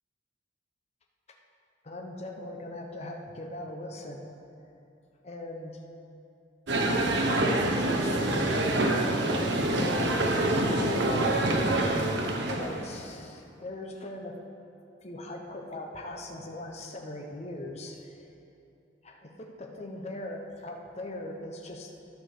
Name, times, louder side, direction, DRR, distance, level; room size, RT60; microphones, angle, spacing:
voice 1, 1.8-4.3 5.2-5.8 6.9-11.9 12.5-14.4 15.0-18.3 19.0-21.9, left 1 dB, 35° left, 1 dB, 0.7 m, -40 dB
sound 1, 6.7-12.9, right 1 dB, 65° right, 0.8 m, -26 dB
11.5 x 4.8 x 6.4 m, 2.7 s
head